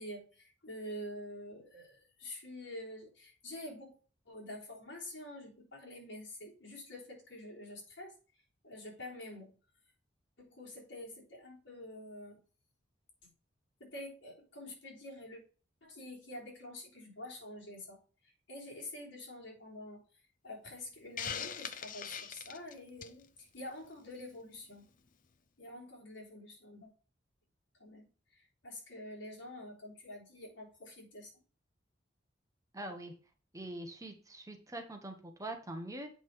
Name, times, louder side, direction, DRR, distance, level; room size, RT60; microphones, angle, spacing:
voice 1, 0.0-3.9 4.3-8.2 8.6-9.5 10.4-12.4 13.8-15.4 15.8-18.0 18.5-20.0 20.4-24.9 25.6-26.9 27.8-28.1 28.6-31.3, left 1 dB, 70° left, -2 dB, 3.4 m, -47 dB
Hiss, 21.2-23.2, left 7 dB, 45° left, 0.6 m, -41 dB
voice 2, 32.7-33.1 33.5-36.1, right 1 dB, 15° right, 4 dB, 1.2 m, -43 dB
7.9 x 5.4 x 4.7 m, 0.38 s
head